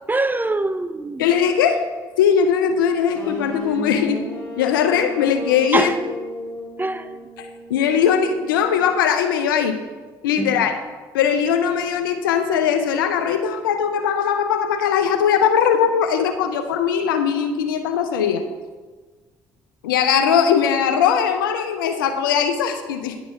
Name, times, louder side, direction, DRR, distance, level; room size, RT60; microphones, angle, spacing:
voice 1, 0.1-1.3 5.7-6.0 6.8-7.1 10.4-10.7, right 2 dB, 15° right, 12 dB, 0.5 m, -23 dB
voice 2, 1.2-1.9 2.2-4.2 4.6-5.9 7.4-9.8 10.2-10.8 11.1-18.4 19.8-23.2, left 7 dB, 90° left, 8 dB, 0.5 m, -20 dB
sound 1, 3.1-9.0, left 1 dB, 10° left, 2.4 m, -35 dB
10.5 x 4.0 x 4.8 m, 1.4 s
hypercardioid pair, 50°, 11 cm